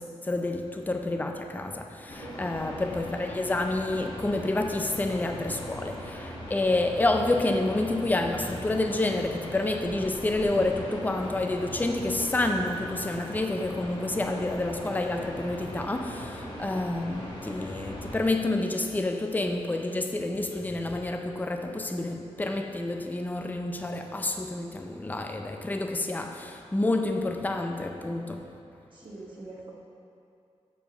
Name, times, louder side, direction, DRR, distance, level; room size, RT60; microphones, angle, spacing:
voice 1, 0.0-28.5, left 2 dB, 15° left, 0.5 m, -29 dB
sound 1, 2.1-18.2, equal, 40° left, 1.5 m, -40 dB
voice 2, 2.2-2.6 28.9-29.7, right 2 dB, 45° right, 1.5 m, -43 dB
7.2 x 4.6 x 6.6 m
wide cardioid pair, 110°, 12 cm